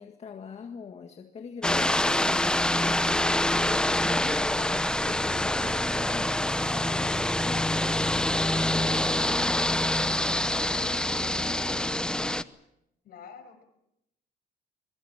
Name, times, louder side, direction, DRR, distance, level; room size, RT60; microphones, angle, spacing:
voice 1, 0.0-12.2, left 6 dB, 40° left, 4 dB, 1.9 m, -42 dB
sound 1, 1.6-12.4, left 1 dB, 5° left, 0.9 m, -26 dB
voice 2, 13.0-13.6, left 6 dB, 65° left, 8 dB, 6.1 m, -47 dB
23.5 x 23.0 x 7.5 m, 0.82 s
cardioid pair, 110°, 17 cm